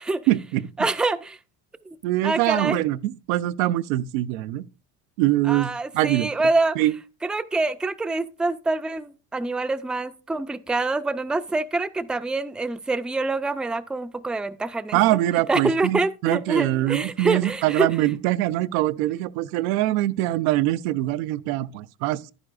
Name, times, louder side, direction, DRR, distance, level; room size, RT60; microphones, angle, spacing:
voice 1, 0.3-0.7 2.0-4.6 5.2-6.3 6.8-6.9 14.9-22.3, right 15 dB, 85° right, 0.6 m, -23 dB
voice 2, 0.8-1.4 1.9-2.0 2.2-2.8 5.4-6.8 7.2-15.0 15.5-17.9, right 3 dB, ahead, 0.4 m, -25 dB
10.5 x 9.8 x 2.5 m
supercardioid pair, 100°, 40 cm